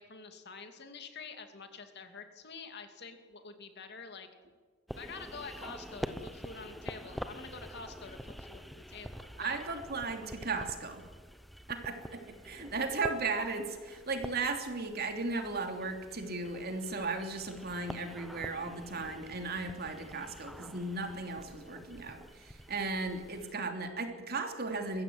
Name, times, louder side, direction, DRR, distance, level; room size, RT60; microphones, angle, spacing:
voice 1, 0.0-4.3 5.0-9.6, left 4 dB, 55° left, 6 dB, 2.6 m, -47 dB
sound 1, 4.9-23.5, equal, ahead, 0.9 m, -47 dB
voice 2, 9.4-11.0 11.7-25.0, right 3 dB, 50° right, 5 dB, 3.1 m, -36 dB
22.5 x 15.5 x 9.6 m, 1.5 s
head